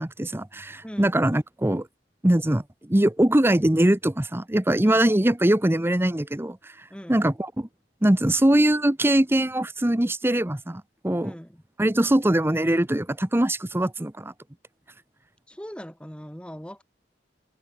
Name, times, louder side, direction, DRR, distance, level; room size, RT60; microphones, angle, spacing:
voice 1, 0.0-1.9 2.2-7.7 8.0-11.4 11.8-14.3, right 1 dB, 15° right, 0.8 m, -22 dB
voice 2, 0.8-1.2 4.8-5.0 6.9-7.2 11.2-11.6 15.5-16.8, equal, 5° left, 4.8 m, -40 dB
head